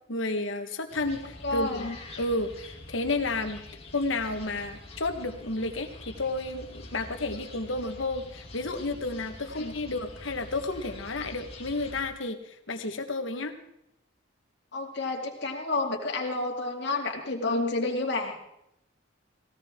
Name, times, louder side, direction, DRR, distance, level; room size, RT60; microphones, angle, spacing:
voice 1, 0.1-1.9 2.2-3.6 3.9-13.5, left 2 dB, 75° left, 7 dB, 1.4 m, -31 dB
sound 1, 0.9-12.0, left 2 dB, 30° left, 2.7 m, -45 dB
voice 2, 1.4-2.0 9.5-9.7 14.7-18.4, left 2 dB, 60° left, 1 dB, 2.4 m, -30 dB
18.0 x 17.0 x 3.7 m, 0.82 s
head